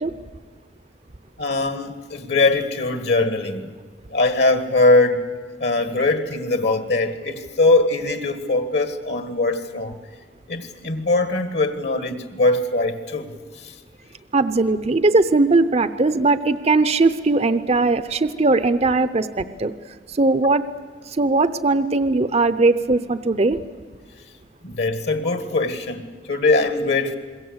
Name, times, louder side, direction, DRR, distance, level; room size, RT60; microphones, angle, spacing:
voice 1, 1.4-3.7 4.1-5.2 5.6-10.0 10.5-13.3 13.5-13.8 24.6-27.2, left 2 dB, 65° left, 9 dB, 1.8 m, -21 dB
voice 2, 14.3-19.7 20.1-20.6 21.1-23.6, right 3 dB, 35° right, 12 dB, 0.7 m, -19 dB
27.0 x 22.0 x 8.1 m, 1.5 s
head